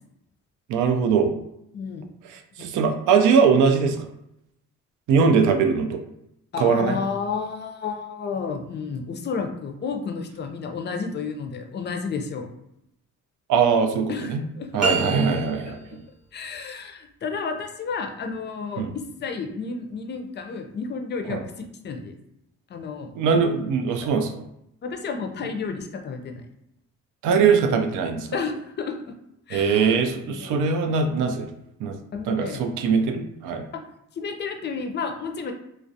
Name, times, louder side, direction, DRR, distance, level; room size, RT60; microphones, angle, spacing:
voice 1, 0.7-1.3 2.6-4.0 5.1-6.0 6.6-7.0 13.5-14.4 14.7-15.8 18.8-18.9 21.3-21.4 23.2-24.4 27.2-28.3 29.5-31.5 31.8-32.0 32.3-33.6, right 5 dB, 80° right, 5 dB, 0.5 m, -21 dB
voice 2, 1.7-2.1 2.5-2.8 6.5-12.5 14.1-14.9 15.4-15.8 16.3-22.2 22.7-23.1 24.8-26.4 28.3-29.0 29.5-29.9 30.3-30.7 32.1-32.6 33.7-33.8 34.1-35.5, left 5 dB, 35° left, 5 dB, 0.4 m, -31 dB
sound 1, 14.8-15.9, right 3 dB, 5° right, 0.8 m, -27 dB
2.3 x 2.1 x 2.6 m, 0.81 s
cardioid pair, 90°, 30 cm